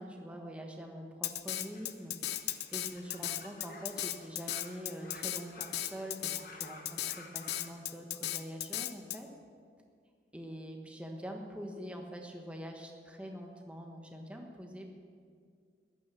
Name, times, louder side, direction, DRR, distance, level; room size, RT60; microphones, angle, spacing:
voice 1, 0.0-9.3 10.3-14.9, equal, 5° right, 2 dB, 1.3 m, -45 dB
Drum kit, 1.2-9.2, left 13 dB, 65° left, 0.6 m, -36 dB
sound 1, 1.4-7.7, left 2 dB, 50° left, 1.3 m, -53 dB
14.5 x 10.5 x 6.9 m, 2.1 s
head